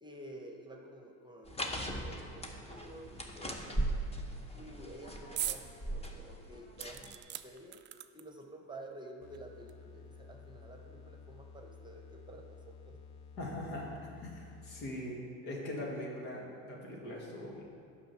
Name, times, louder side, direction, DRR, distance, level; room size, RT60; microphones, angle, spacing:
voice 1, 0.0-4.0 4.5-7.1 7.4-7.8 8.1-13.0, right 1 dB, 10° right, 2 dB, 1.0 m, -51 dB
sound 1, 1.5-7.2, right 1 dB, 15° left, 1.0 m, -39 dB
sound 2, 5.4-5.7 6.1-6.2 6.8-8.4 9.3-9.4 9.7-9.8, right 12 dB, 30° right, 0.3 m, -40 dB
sound 3, 9.2-15.1, left 5 dB, 40° left, 0.7 m, -53 dB
voice 2, 13.4-15.2 15.4-17.6, left 1 dB, 80° left, -2 dB, 2.2 m, -41 dB
7.8 x 5.7 x 6.6 m, 2.3 s
supercardioid pair, 90°, 41 cm